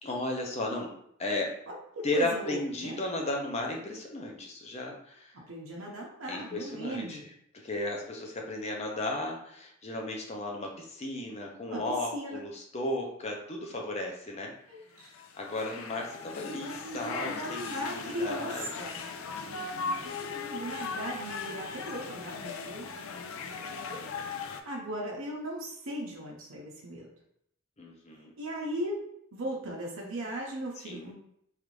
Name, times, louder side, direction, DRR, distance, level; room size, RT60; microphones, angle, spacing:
voice 1, 0.0-1.6 2.0-5.3 6.3-7.2 7.6-14.5 15.4-18.9 19.4-20.0 23.7-24.1 27.8-28.3 30.8-31.1, left 2 dB, 30° left, 1 dB, 0.6 m, -35 dB
voice 2, 1.7-3.0 5.3-7.2 11.7-11.8 12.1-12.4 14.7-15.1 16.5-19.0 20.0-23.0 23.9-24.0 24.5-27.1 28.1-29.0 29.3-31.1, equal, 80° right, -3 dB, 0.7 m, -38 dB
sound 1, 15.0-24.6, left 4 dB, 90° left, 0.4 m, -38 dB
3.2 x 2.5 x 3.1 m, 0.72 s
head